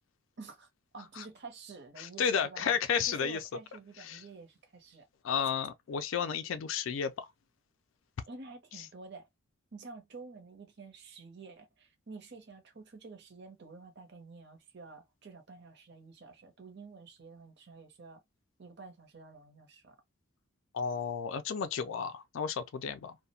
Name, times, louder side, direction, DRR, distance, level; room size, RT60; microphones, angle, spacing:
voice 1, 0.4-2.8 3.1-5.1 8.3-9.3 9.7-18.2 18.6-20.0, right 4 dB, 55° right, 0.7 m, -49 dB
voice 2, 2.0-3.4 4.0-4.2 5.2-7.3 20.7-23.2, left 7 dB, 65° left, 0.4 m, -32 dB
2.4 x 2.1 x 2.7 m
head